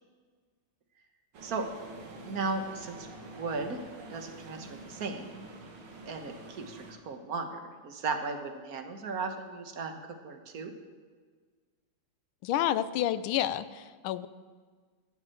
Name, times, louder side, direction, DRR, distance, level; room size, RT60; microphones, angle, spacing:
sound 1, 1.3-6.9, right 2 dB, 90° right, 2.5 m, -47 dB
voice 1, 2.2-3.8 4.1-5.4 6.0-10.0 10.2-10.7, right 4 dB, 50° right, 5 dB, 1.4 m, -36 dB
voice 2, 12.4-14.3, left 12 dB, 85° left, 14 dB, 1.5 m, -29 dB
13.5 x 7.2 x 7.7 m, 1.5 s
omnidirectional pair, 2.3 m